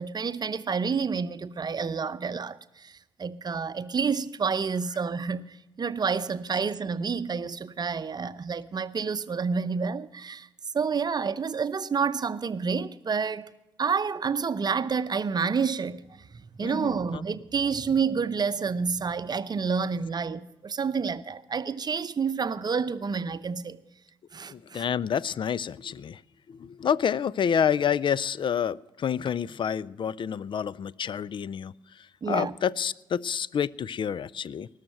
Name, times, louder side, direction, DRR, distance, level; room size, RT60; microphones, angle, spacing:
voice 1, 0.0-10.5 10.7-13.5 13.8-23.8 24.3-24.9 32.2-32.5, right 5 dB, 35° right, 0.7 m, -29 dB
voice 2, 16.6-17.2 24.5-26.2 26.5-31.7 32.3-34.7, left 8 dB, 40° left, 0.4 m, -28 dB
19.5 x 6.5 x 9.2 m
hypercardioid pair, 45°, 12 cm